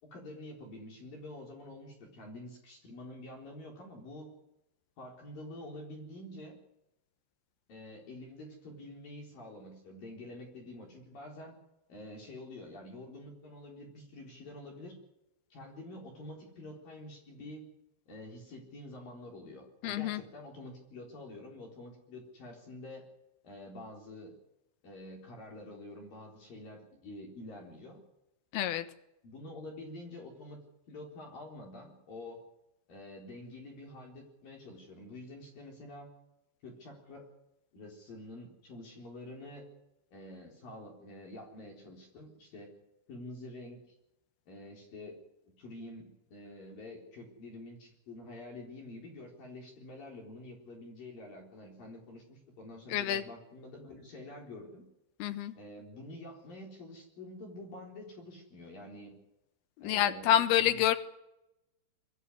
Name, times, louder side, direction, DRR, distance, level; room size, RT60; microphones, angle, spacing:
voice 1, 0.0-4.3 5.0-6.6 7.7-11.6 11.9-15.0 15.5-17.7 18.1-23.0 23.4-24.4 24.8-28.0 29.2-30.6 30.9-32.4 32.9-36.1 36.6-37.3 37.7-39.7 40.1-42.7 43.1-44.0 44.5-45.2 45.6-54.8 55.5-59.1 59.8-60.9, left 1 dB, 50° left, 0 dB, 5.5 m, -47 dB
voice 2, 19.8-20.2 28.5-28.8 52.9-53.2 55.2-55.5 59.8-61.0, left 11 dB, 70° left, 9 dB, 2.9 m, -27 dB
23.0 x 14.0 x 9.7 m, 0.89 s
omnidirectional pair, 5.4 m